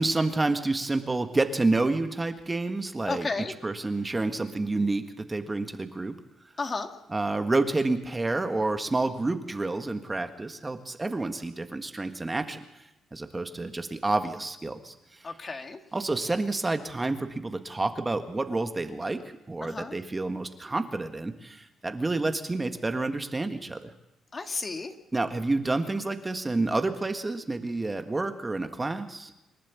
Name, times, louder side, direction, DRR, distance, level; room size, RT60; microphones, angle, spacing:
voice 1, 0.0-6.1 7.1-12.6 13.1-15.3 15.9-19.2 19.5-23.9 25.1-29.3, right 2 dB, 20° right, 7 dB, 1.6 m, -29 dB
voice 2, 3.1-3.5 6.6-6.9 15.2-15.8 19.6-20.0 24.3-24.9, left 4 dB, 35° left, 6 dB, 1.9 m, -32 dB
27.5 x 12.0 x 8.3 m, 0.89 s
cardioid pair, 90°, 0 cm